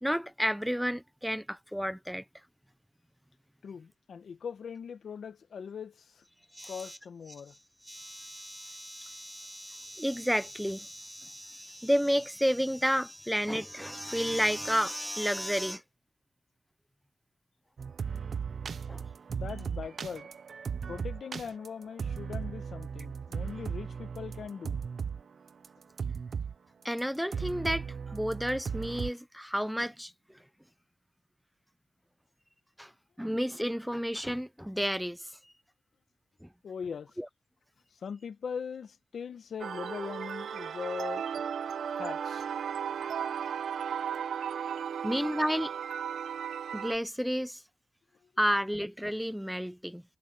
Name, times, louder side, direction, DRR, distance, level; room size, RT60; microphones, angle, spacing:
voice 1, 0.0-2.2 6.5-7.0 7.9-15.8 18.9-19.0 26.8-30.1 32.8-32.9 33.2-35.3 36.4-36.5 37.2-37.3 45.0-45.7 46.7-47.6 48.4-50.0, equal, ahead, 0.9 m, -31 dB
voice 2, 3.6-6.2 6.7-7.6 19.3-20.3 20.9-24.8 36.6-37.2 37.9-41.2 41.9-42.5, left 6 dB, 70° left, 1.4 m, -40 dB
sound 1, 17.8-25.2 25.5-26.5 26.8-27.0 27.3-29.1, right 6 dB, 60° right, 0.6 m, -36 dB
sound 2, 39.6-47.0, right 8 dB, 85° right, 0.9 m, -35 dB
cardioid pair, 85°, 0 cm